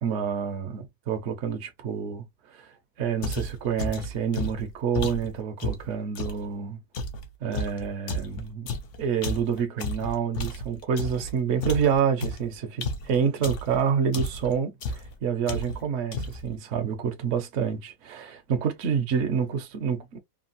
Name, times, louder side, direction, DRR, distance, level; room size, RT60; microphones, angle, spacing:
voice 1, 0.0-2.2 2.5-2.7 3.0-6.8 7.4-8.7 9.0-20.2, right 7 dB, 60° right, 1.0 m, -28 dB
sound 1, 3.2-6.4 6.9-11.3 11.6-13.8 14.1-14.5 14.8-15.1 15.5-15.9 16.1-16.5, left 2 dB, 60° left, 0.9 m, -32 dB
3.3 x 2.4 x 2.5 m
omnidirectional pair, 1.6 m